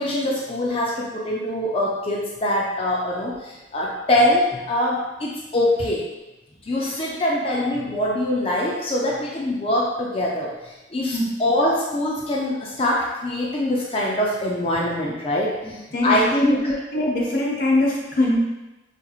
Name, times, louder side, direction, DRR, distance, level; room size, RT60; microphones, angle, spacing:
voice 1, 0.0-6.1 6.6-16.7, left 1 dB, 30° left, -3 dB, 0.4 m, -23 dB
voice 2, 15.6-18.4, left 1 dB, 50° left, -4 dB, 0.9 m, -22 dB
5.0 x 2.9 x 2.4 m, 1.0 s
head